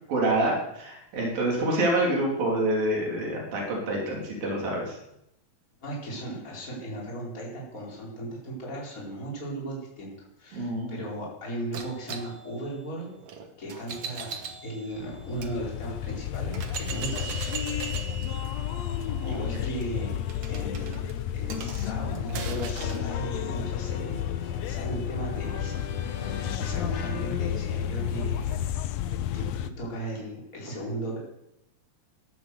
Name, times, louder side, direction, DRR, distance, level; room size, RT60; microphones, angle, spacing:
voice 1, 0.1-5.0 10.5-11.0 19.0-19.4, right 1 dB, 85° right, -2 dB, 5.0 m, -27 dB
voice 2, 5.8-13.1 13.6-17.3 17.7-18.2 19.2-20.2 20.5-25.8 26.1-28.6 29.3-29.4 29.8-31.2, right 1 dB, 25° left, -4 dB, 4.6 m, -37 dB
sound 1, 11.7-15.5 16.1-16.2 16.5-23.1, right 6 dB, 55° right, 1.9 m, -40 dB
sound 2, 14.9-29.7, left 10 dB, 80° left, 1.5 m, -32 dB
sound 3, 22.8-28.7, left 7 dB, 60° left, 1.3 m, -36 dB
14.5 x 11.0 x 6.8 m, 0.82 s
omnidirectional pair, 4.0 m